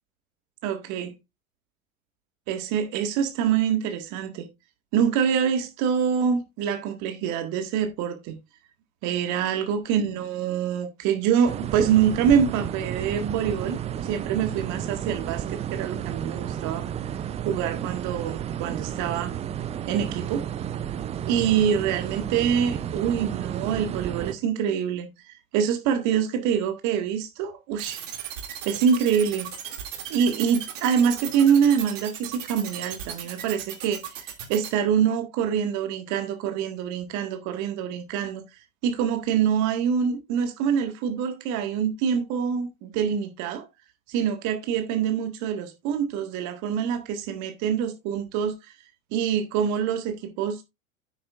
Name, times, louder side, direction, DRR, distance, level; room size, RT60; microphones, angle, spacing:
voice 1, 0.6-1.1 2.5-4.5 4.9-8.4 9.0-16.9 17.5-19.4 19.9-20.4 21.3-28.0 28.7-29.5 30.1-38.4 38.8-43.7 44.1-48.7 49.1-50.6, right 8 dB, 45° right, 1.7 m, -25 dB
sound 1, 11.5-24.3, right 9 dB, 15° right, 0.5 m, -32 dB
sound 2, 27.8-34.7, right 10 dB, 60° right, 2.5 m, -36 dB
9.5 x 8.9 x 2.4 m
figure-of-eight pair, 85°, 41 cm